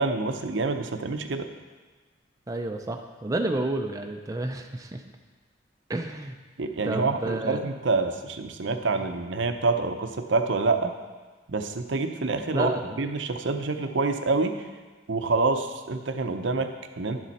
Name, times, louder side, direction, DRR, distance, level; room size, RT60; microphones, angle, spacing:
voice 1, 0.0-1.5 6.6-10.9 11.5-12.7 13.0-14.7 15.1-17.2, right 3 dB, 65° right, 7 dB, 0.7 m, -27 dB
voice 2, 2.5-5.0 5.9-6.4 6.8-7.6 12.5-13.0, right 2 dB, 15° right, 3 dB, 0.5 m, -30 dB
11.0 x 7.3 x 4.1 m, 1.4 s
head